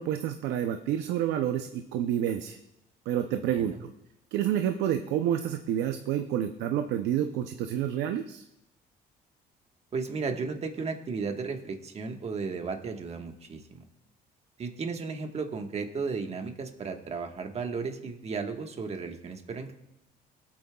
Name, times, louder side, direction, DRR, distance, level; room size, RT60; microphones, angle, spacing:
voice 1, 0.0-2.6 3.1-3.9 4.3-8.4, right 10 dB, 90° right, 7 dB, 0.6 m, -29 dB
voice 2, 3.3-3.8 9.9-13.8 14.6-19.7, right 4 dB, 40° right, 4 dB, 1.4 m, -34 dB
23.5 x 8.6 x 2.3 m, 0.85 s
cardioid pair, 110°, 17 cm